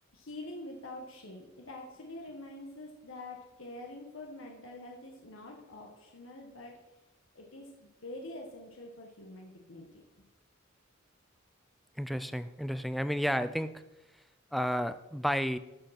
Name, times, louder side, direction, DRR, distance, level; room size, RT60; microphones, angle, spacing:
voice 1, 0.1-6.8 7.3-10.0, left 1 dB, 70° left, 1 dB, 1.4 m, -46 dB
voice 2, 12.0-13.7 14.5-15.6, equal, ahead, 12 dB, 0.3 m, -31 dB
13.5 x 5.4 x 5.8 m, 1.0 s
head